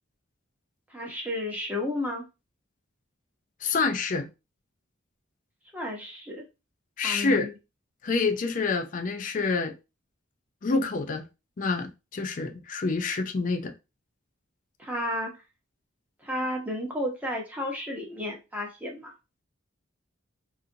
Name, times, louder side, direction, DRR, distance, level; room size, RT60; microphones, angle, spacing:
voice 1, 0.9-2.2 5.7-6.4 7.0-7.5 14.8-15.4 16.2-19.1, left 1 dB, 10° right, 0.7 m, -32 dB
voice 2, 3.6-4.3 7.0-7.5 8.0-9.7 10.6-11.2 11.6-13.7, left 4 dB, 40° left, 0.4 m, -27 dB
2.7 x 2.5 x 2.6 m
head